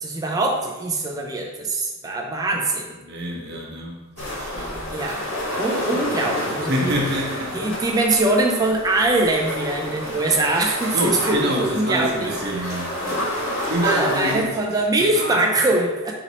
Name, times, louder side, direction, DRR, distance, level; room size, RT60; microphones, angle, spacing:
voice 1, 0.0-3.0 4.9-5.3 5.6-6.9 7.5-12.8 13.6-16.1, right 2 dB, 15° right, 0 dB, 0.4 m, -23 dB
voice 2, 3.0-5.0 5.9-6.2 6.7-7.7 10.9-13.3 13.6-14.5 15.0-15.4, equal, 50° right, -2 dB, 0.9 m, -27 dB
sound 1, 4.2-14.4, left 1 dB, 65° left, 1.4 m, -29 dB
4.3 x 2.9 x 4.0 m, 1.2 s
head